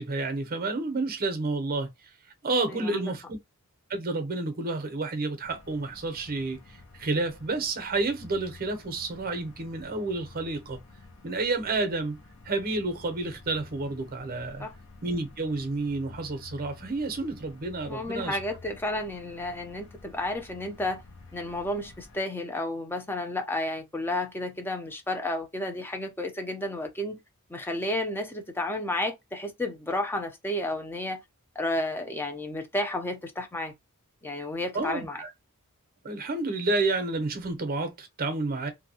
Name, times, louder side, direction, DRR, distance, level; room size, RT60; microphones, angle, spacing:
voice 1, 0.0-1.9 2.4-3.4 3.9-6.6 7.0-10.8 11.2-12.2 12.4-14.7 15.0-18.4 34.7-35.3 36.0-38.7, right 3 dB, 40° right, 0.7 m, -30 dB
voice 2, 2.7-3.1 14.6-14.7 17.9-21.0 21.3-27.2 27.5-31.2 31.6-33.7 34.2-35.2, left 1 dB, 10° left, 0.5 m, -32 dB
sound 1, 5.4-22.2, left 3 dB, 60° left, 0.8 m, -50 dB
2.6 x 2.2 x 2.7 m
head